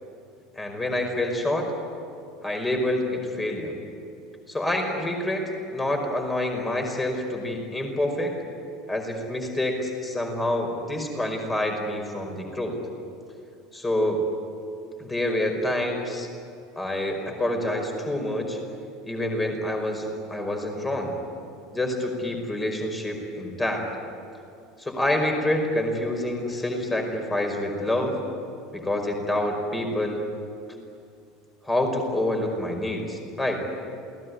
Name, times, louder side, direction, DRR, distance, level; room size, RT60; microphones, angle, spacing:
voice 1, 0.5-1.7 2.4-3.7 4.5-8.3 8.9-12.8 13.7-14.2 15.0-16.3 16.8-18.6 19.0-21.1 21.7-23.9 24.8-28.1 28.7-30.2 31.6-33.6, left 1 dB, 15° left, 4 dB, 5.3 m, -27 dB
28.5 x 18.5 x 9.6 m, 2.5 s
figure-of-eight pair, 70°, 0 cm